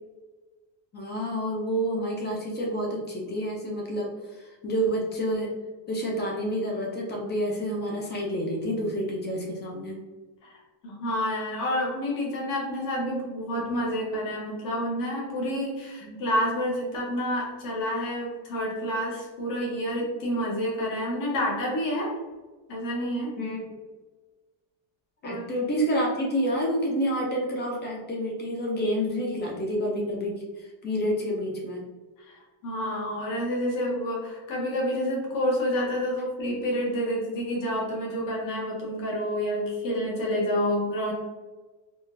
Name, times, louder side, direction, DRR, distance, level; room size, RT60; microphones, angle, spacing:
voice 1, 0.9-5.6 5.9-10.0 16.0-16.2 23.4-23.6 25.2-31.8, equal, 25° left, 0 dB, 0.3 m, -29 dB
voice 2, 10.8-22.1 22.7-23.3 25.2-25.5 32.3-41.1, equal, 40° left, -3 dB, 0.9 m, -29 dB
3.6 x 2.2 x 2.5 m, 1.2 s
cardioid pair, 160°, 49 cm